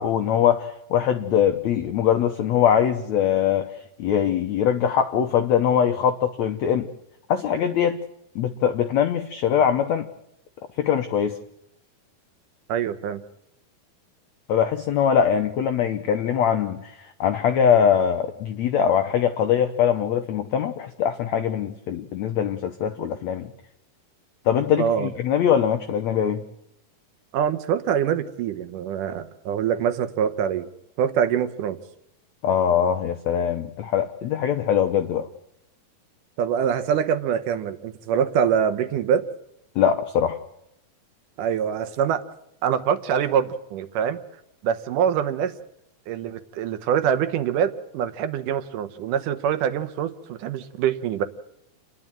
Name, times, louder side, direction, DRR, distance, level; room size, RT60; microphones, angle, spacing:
voice 1, 0.0-3.7 4.0-6.9 7.3-8.0 8.3-10.1 10.8-11.4 14.5-23.5 24.5-26.4 32.4-35.3 39.7-40.4, left 8 dB, 75° left, 7 dB, 1.6 m, -22 dB
voice 2, 12.7-13.2 24.8-25.1 27.3-30.7 31.0-31.8 36.4-39.3 41.4-42.2 42.6-44.2 44.6-45.5 46.1-51.2, right 8 dB, 70° right, 10 dB, 2.3 m, -24 dB
29.0 x 11.0 x 9.0 m, 0.80 s
omnidirectional pair, 4.3 m